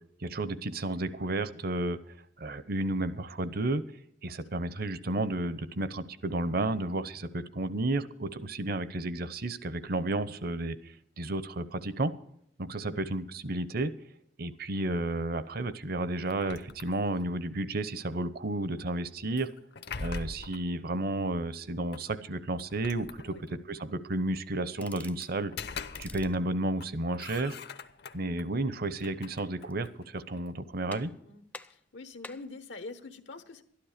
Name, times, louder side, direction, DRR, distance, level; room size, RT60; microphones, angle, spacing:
voice 1, 0.2-2.0 2.4-3.8 4.2-12.1 12.6-13.9 14.4-19.5 20.0-25.5 26.0-27.6 28.1-31.1, right 2 dB, 55° right, 14 dB, 0.8 m, -32 dB
sound 1, 16.3-17.4 19.4-20.7 21.9-22.0 22.6-23.7 25.3-26.5 26.8-28.4 28.9-30.6, left 4 dB, 65° left, 0.8 m, -43 dB
sound 2, 24.7-25.4 25.8-26.4 29.4-30.0 30.4-30.5 30.9-31.3 31.5-32.5, left 2 dB, 10° left, 0.5 m, -48 dB
voice 2, 31.7-33.6, left 3 dB, 80° left, 9 dB, 1.1 m, -45 dB
12.5 x 11.5 x 5.0 m, 0.71 s
head